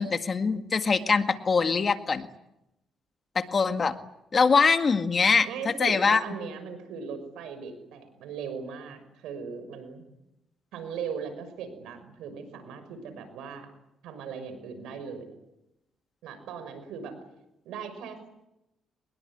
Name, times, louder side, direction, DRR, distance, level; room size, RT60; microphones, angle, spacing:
voice 1, 0.0-2.3 3.4-4.0 4.3-6.2, left 5 dB, 40° left, 8 dB, 1.9 m, -23 dB
voice 2, 5.4-10.0 10.7-13.7 14.0-15.3 16.2-17.1 17.6-18.2, right 6 dB, 90° right, 9 dB, 6.2 m, -38 dB
23.5 x 21.0 x 10.0 m, 0.87 s
cardioid pair, 90°, 0 cm